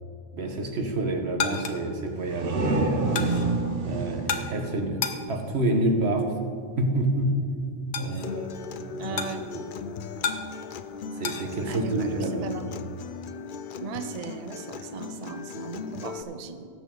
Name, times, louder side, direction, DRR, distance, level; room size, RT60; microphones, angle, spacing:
voice 1, 0.3-3.3 3.8-5.0 5.3-6.3 6.8-7.4 7.9-8.5 8.9-9.6 11.2-12.6, right 1 dB, 75° right, 3 dB, 1.5 m, -28 dB
sound 1, 0.8-11.5, left 6 dB, 85° left, 1.1 m, -36 dB
sound 2, 2.1-5.7, right 3 dB, 60° right, 1.1 m, -29 dB
Acoustic guitar, 8.2-16.2, left 5 dB, 60° left, 0.6 m, -38 dB
voice 2, 9.0-9.4 11.7-12.6 13.8-16.7, right 6 dB, 45° right, 8 dB, 0.6 m, -37 dB
17.5 x 7.2 x 3.8 m, 2.3 s
omnidirectional pair, 1.1 m